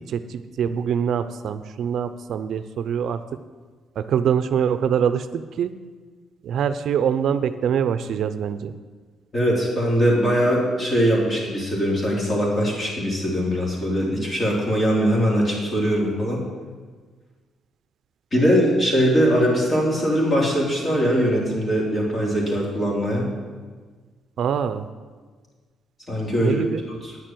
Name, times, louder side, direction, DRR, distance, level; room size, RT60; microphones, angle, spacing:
voice 1, 0.1-3.2 4.0-5.7 6.4-8.7 24.4-24.9 26.4-26.8, right 8 dB, 70° right, 11 dB, 0.5 m, -24 dB
voice 2, 9.3-16.4 18.3-23.3 26.1-26.6 27.0-27.2, equal, 35° left, -3 dB, 3.9 m, -21 dB
9.7 x 6.7 x 7.7 m, 1.5 s
cardioid pair, 90°, 0 cm